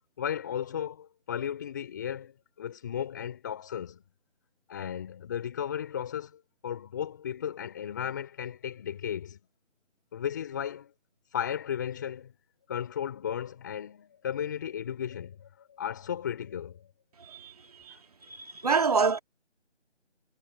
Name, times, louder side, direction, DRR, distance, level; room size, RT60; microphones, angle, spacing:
voice 1, 0.2-4.0 4.7-9.4 10.1-10.9 11.3-12.3 12.7-16.9, left 9 dB, 15° left, 3.2 m, -35 dB
voice 2, 18.3-19.2, right 5 dB, 30° right, 2.2 m, -26 dB
figure-of-eight pair, 170°, 36 cm